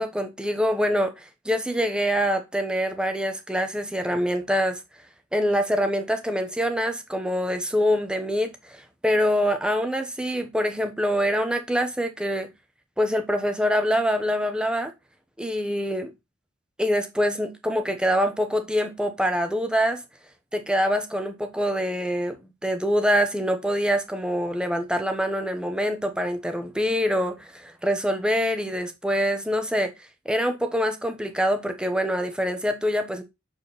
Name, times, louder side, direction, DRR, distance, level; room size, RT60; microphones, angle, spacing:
voice 1, 0.0-4.8 5.3-12.5 13.0-14.9 15.4-16.1 16.8-20.0 20.5-22.4 22.6-29.9 30.2-33.2, equal, 5° right, 0.9 m, -25 dB
7.1 x 4.4 x 4.0 m
head